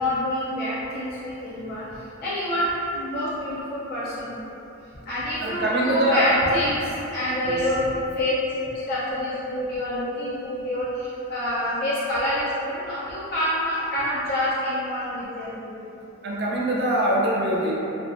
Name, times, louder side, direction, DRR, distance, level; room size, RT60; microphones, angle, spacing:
voice 1, 0.0-1.8 2.2-4.3 5.1-8.4 8.6-15.7, left 1 dB, 45° left, -10 dB, 0.4 m, -27 dB
voice 2, 5.4-6.3 7.5-7.6 16.2-17.7, right 1 dB, 50° right, -4 dB, 0.5 m, -23 dB
2.7 x 2.4 x 2.4 m, 2.9 s
head